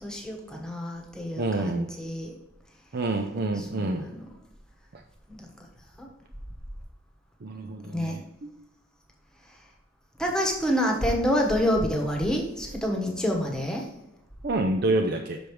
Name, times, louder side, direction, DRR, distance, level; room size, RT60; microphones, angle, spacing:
voice 1, 0.0-2.3 3.8-4.2 5.3-5.4 6.0-6.1 7.8-8.2 10.2-13.8, equal, 5° left, 1 dB, 1.2 m, -27 dB
voice 2, 1.4-1.9 2.9-4.1 4.9-5.0 7.4-8.5 14.4-15.4, right 2 dB, 50° right, 3 dB, 0.5 m, -28 dB
6.1 x 5.2 x 4.7 m, 0.93 s
head